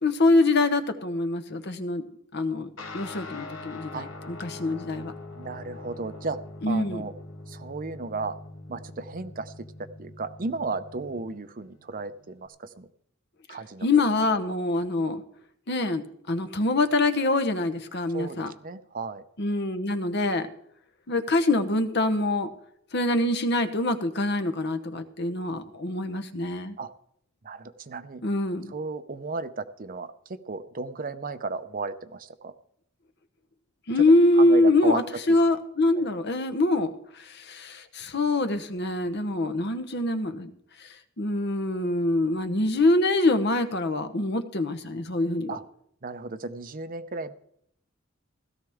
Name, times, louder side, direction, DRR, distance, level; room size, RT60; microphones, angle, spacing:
voice 1, 0.0-2.0 2.3-5.1 6.6-7.0 13.5-15.2 15.7-18.5 19.4-20.5 21.1-22.5 22.9-26.8 28.2-28.7 33.9-40.5 40.8-40.9 41.2-45.6, left 2 dB, 55° left, 9 dB, 1.0 m, -24 dB
Guitar, 2.8-12.5, left 2 dB, 80° left, 1.8 m, -43 dB
voice 2, 5.3-6.4 6.7-7.1 7.5-8.3 8.7-9.5 10.0-12.9 13.5-13.9 18.1-19.2 26.8-26.9 27.4-28.2 28.7-32.5 34.4-35.0 45.5-45.6 46.0-47.3, right 3 dB, 45° right, 11 dB, 0.7 m, -34 dB
16.5 x 13.5 x 3.6 m, 0.71 s
head